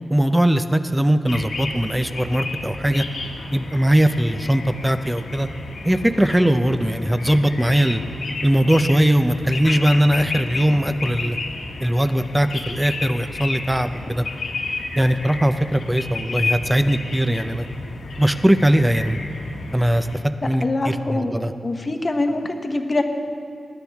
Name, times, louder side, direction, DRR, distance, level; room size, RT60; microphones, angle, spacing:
voice 1, 0.1-3.0 3.5-5.5 5.8-8.0 8.4-11.4 11.8-14.2 15.0-17.7 18.2-19.2 19.7-20.1 20.4-21.5, right 1 dB, 10° right, 9 dB, 0.6 m, -20 dB
sound 1, 1.3-20.2, left 3 dB, 75° left, 1.5 m, -32 dB
voice 2, 20.6-23.0, left 2 dB, 35° left, 5 dB, 1.0 m, -24 dB
20.0 x 11.0 x 3.5 m, 2.5 s
wide cardioid pair, 95°, 0 cm